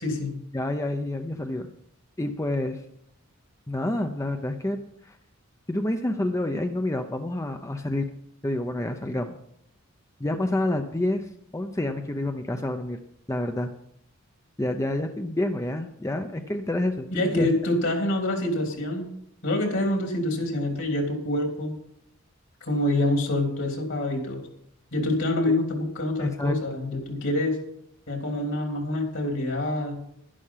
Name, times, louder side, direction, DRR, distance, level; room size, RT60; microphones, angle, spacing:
voice 1, 0.5-1.7 2.2-2.8 3.7-5.2 5.7-8.1 8.4-9.4 10.2-13.0 13.3-13.7 14.6-17.5 25.5-25.6 26.2-26.5, left 1 dB, 15° left, 6 dB, 0.6 m, -28 dB
voice 2, 17.1-19.1 19.4-21.7 22.6-24.4 24.9-27.6 28.1-30.0, left 1 dB, 65° left, 2 dB, 3.5 m, -26 dB
11.5 x 11.0 x 5.7 m, 0.73 s
head